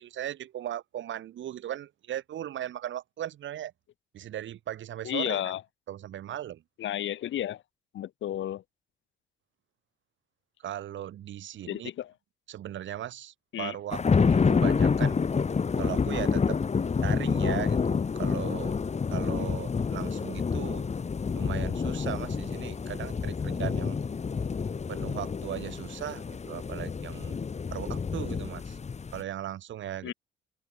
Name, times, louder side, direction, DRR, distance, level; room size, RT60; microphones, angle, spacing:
voice 1, 0.0-3.7 4.1-5.4 5.9-6.6 10.6-11.9 12.5-15.2 15.8-16.6 17.0-18.8 19.1-20.9 21.3-24.0 24.9-27.4 27.7-28.8 29.1-30.1, right 11 dB, 70° right, 3.6 m, -37 dB
voice 2, 5.0-5.6 6.8-7.6 7.9-8.6 11.7-12.1 13.5-13.7 19.4-19.6 30.0-30.1, left 12 dB, 75° left, 2.7 m, -32 dB
sound 1, 13.9-29.2, left 5 dB, 35° left, 2.2 m, -28 dB
open air
cardioid pair, 90°, 20 cm